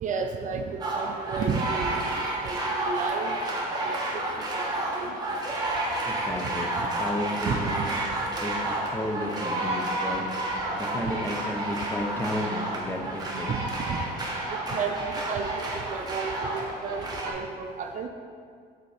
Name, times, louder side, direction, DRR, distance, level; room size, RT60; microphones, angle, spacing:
voice 1, 0.0-2.1 2.4-3.5 3.8-4.0 4.5-4.6 5.0-5.1 7.5-7.9 13.5-13.6 13.9-14.0 14.7-18.1, right 5 dB, 50° right, 5 dB, 0.5 m, -32 dB
sound 1, 0.8-17.3, right 1 dB, 25° right, 1.3 m, -30 dB
voice 2, 6.0-6.7 7.0-7.8 8.4-10.3 10.8-13.5, left 1 dB, 15° left, 1 dB, 0.8 m, -32 dB
6.9 x 4.1 x 5.0 m, 2.1 s
cardioid pair, 110°, 17 cm